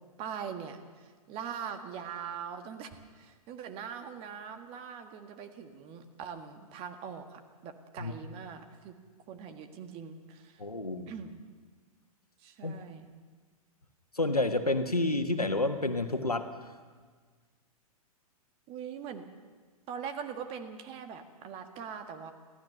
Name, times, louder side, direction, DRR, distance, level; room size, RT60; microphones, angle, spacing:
voice 1, 0.2-9.0 9.3-10.6 11.1-11.4 12.4-13.1 18.7-19.3 19.9-22.3, right 7 dB, 30° right, 7 dB, 1.7 m, -42 dB
voice 2, 10.6-11.1 12.6-12.8 14.1-16.7, left 2 dB, 85° left, 7 dB, 1.5 m, -29 dB
24.0 x 15.5 x 6.9 m, 1.5 s
figure-of-eight pair, 110°, 19 cm